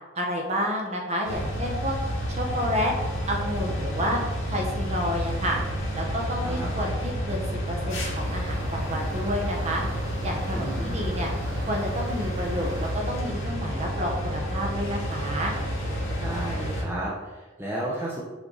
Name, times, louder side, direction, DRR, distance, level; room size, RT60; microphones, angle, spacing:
voice 1, 0.1-1.9 2.4-2.9 3.3-4.2 4.5-5.6 5.9-7.4 7.7-9.8 10.2-11.3 11.7-15.5, equal, 35° right, 0 dB, 1.0 m, -29 dB
sound 1, 1.3-16.8, equal, 80° left, 1.7 m, -30 dB
sound 2, 7.9-12.9, equal, 60° right, 1.1 m, -41 dB
voice 2, 10.5-11.0 16.2-18.2, right 1 dB, 10° right, -5 dB, 0.7 m, -33 dB
6.1 x 3.9 x 3.9 m, 1.2 s
head